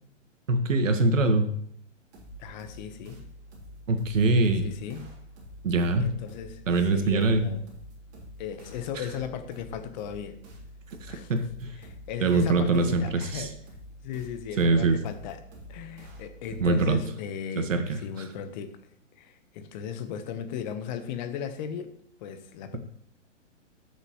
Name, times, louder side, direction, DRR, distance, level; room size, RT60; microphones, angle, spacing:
voice 1, 0.5-1.5 3.9-4.7 5.6-6.1 6.7-7.4 11.1-11.4 12.2-13.5 14.6-15.0 16.6-17.0 17.6-18.0, right 3 dB, 85° right, 6 dB, 1.7 m, -23 dB
sound 1, 2.1-16.9, equal, 25° right, 3.4 m, -47 dB
voice 2, 2.4-3.2 4.4-5.1 6.0-7.6 8.4-10.4 11.1-11.4 11.8-13.6 14.0-15.4 15.7-18.8 19.2-22.8, left 8 dB, 35° left, 9 dB, 1.1 m, -37 dB
13.0 x 6.9 x 3.1 m, 0.67 s
hypercardioid pair, 140°, 38 cm